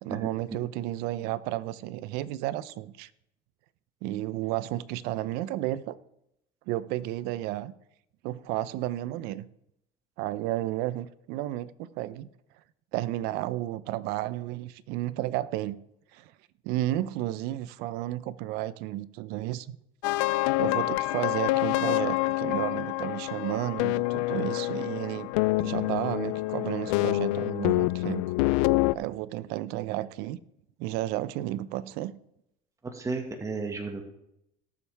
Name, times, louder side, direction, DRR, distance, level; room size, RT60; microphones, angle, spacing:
voice 1, 0.0-3.1 4.0-6.0 6.7-7.7 8.2-9.5 10.2-12.3 12.9-15.8 16.1-16.3 16.6-19.8 20.6-25.3 25.6-28.2 28.9-30.4 30.8-32.1, right 15 dB, 75° right, 0.7 m, -32 dB
sound 1, 20.0-28.9, left 20 dB, 80° left, 0.4 m, -27 dB
voice 2, 32.9-34.0, right 4 dB, 20° right, 1.8 m, -33 dB
18.5 x 7.3 x 3.5 m
supercardioid pair, 100°, 17 cm